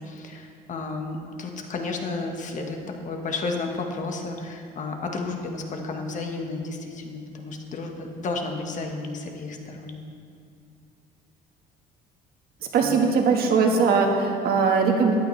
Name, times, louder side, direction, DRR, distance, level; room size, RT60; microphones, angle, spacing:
voice 1, 0.0-2.8 3.0-9.9 12.8-12.9, left 3 dB, 50° left, 3 dB, 1.5 m, -32 dB
voice 2, 12.6-15.2, right 5 dB, 65° right, 2 dB, 1.6 m, -20 dB
14.5 x 11.5 x 3.3 m, 2.4 s
cardioid pair, 110°, 17 cm